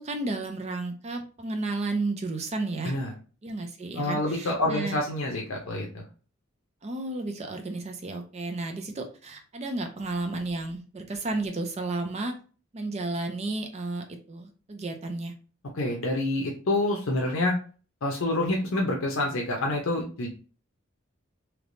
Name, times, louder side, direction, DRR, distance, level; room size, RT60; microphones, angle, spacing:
voice 1, 0.0-3.0 3.4-5.0 6.8-12.4 12.7-15.3, right 2 dB, 30° right, 6 dB, 0.4 m, -32 dB
voice 2, 4.0-6.0 15.7-17.6 18.0-20.3, left 2 dB, 70° left, 0 dB, 0.6 m, -27 dB
3.4 x 2.8 x 2.6 m, 0.38 s
head